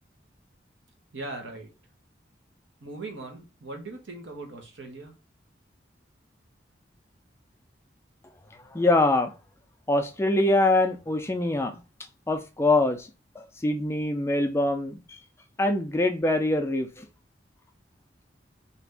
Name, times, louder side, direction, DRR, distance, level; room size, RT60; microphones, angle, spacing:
voice 1, 1.1-1.7 2.8-5.1, right 2 dB, 90° right, 0.9 m, -39 dB
voice 2, 8.7-9.3 9.9-11.8 12.3-13.1 13.4-15.2 15.6-17.1, left 2 dB, 15° left, 0.3 m, -24 dB
2.8 x 2.5 x 3.3 m
head